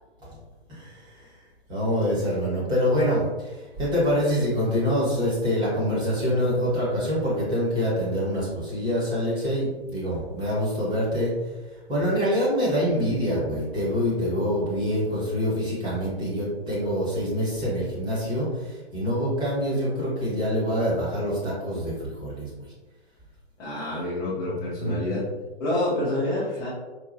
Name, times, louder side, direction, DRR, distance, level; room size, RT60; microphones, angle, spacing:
voice 1, 0.7-1.4 1.7-11.3 11.9-22.6 24.8-25.0, equal, 15° right, -6 dB, 1.3 m, -25 dB
voice 2, 23.6-25.3 25.6-26.7, left 1 dB, 10° left, -9 dB, 0.5 m, -27 dB
4.6 x 2.7 x 2.6 m, 1.2 s
figure-of-eight pair, 125°, 32 cm